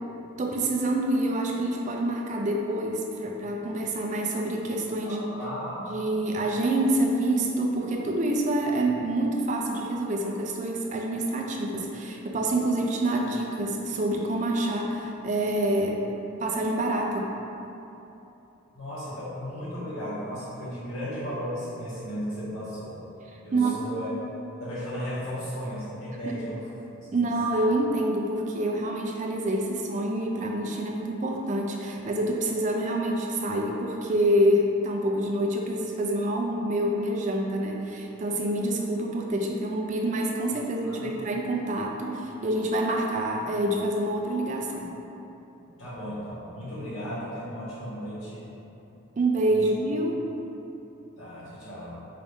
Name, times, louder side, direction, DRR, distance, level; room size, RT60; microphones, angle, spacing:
voice 1, 0.4-5.3 5.9-16.0 16.4-17.3 23.5-23.8 26.2-26.4 27.1-44.9 49.2-50.2, right 1 dB, 35° right, 1 dB, 0.3 m, -27 dB
voice 2, 5.0-5.9 18.7-23.0 23.4-24.1 24.6-26.6 27.1-27.3 40.8-41.2 45.7-48.4 49.5-49.7 51.2-52.0, equal, 65° left, -11 dB, 1.5 m, -35 dB
4.7 x 2.6 x 3.5 m, 3.0 s
head